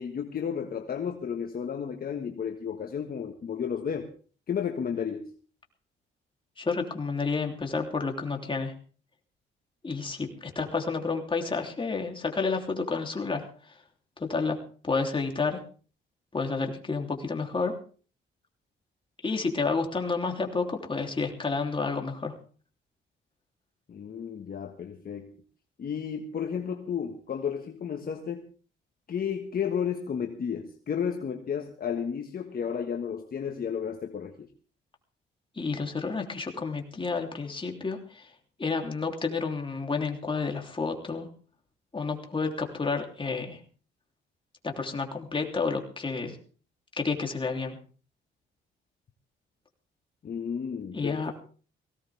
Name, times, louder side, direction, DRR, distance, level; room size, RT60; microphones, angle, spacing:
voice 1, 0.0-4.1 4.5-5.3 23.9-25.3 25.8-28.5 29.1-34.5 50.2-51.3, left 7 dB, 50° left, 4 dB, 1.6 m, -32 dB
voice 2, 6.6-8.7 9.8-13.8 14.2-14.6 14.8-15.6 16.3-17.7 19.2-22.3 35.5-38.3 38.6-41.3 41.9-43.6 44.6-46.4 46.9-47.8 50.9-51.3, left 4 dB, 25° left, 3 dB, 3.3 m, -30 dB
19.0 x 17.0 x 3.6 m, 0.40 s
cardioid pair, 90°, 20 cm